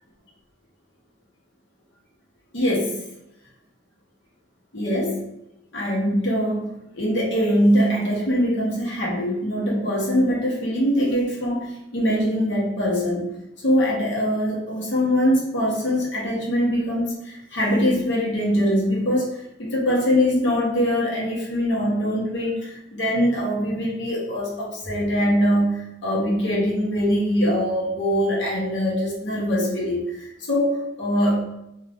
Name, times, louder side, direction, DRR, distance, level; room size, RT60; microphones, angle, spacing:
voice 1, 2.5-3.0 4.7-5.2 5.7-6.7 6.9-13.3 13.6-31.4, equal, 75° left, -4 dB, 0.9 m, -22 dB
2.4 x 2.4 x 3.4 m, 0.86 s
head